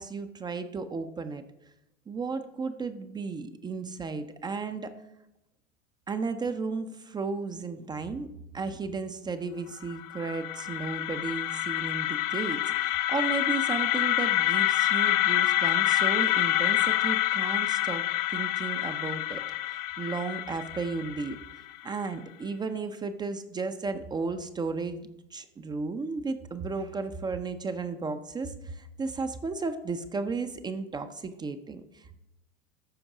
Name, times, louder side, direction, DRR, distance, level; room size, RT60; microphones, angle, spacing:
voice 1, 0.0-1.4 2.1-4.9 6.1-8.3 8.5-18.0 18.3-19.4 20.0-21.4 21.8-32.2, right 4 dB, 10° right, 9 dB, 0.4 m, -34 dB
sound 1, 9.9-21.8, left 15 dB, 40° left, 0.6 m, -27 dB
13.5 x 5.2 x 4.8 m, 0.88 s
hypercardioid pair, 95°, 39 cm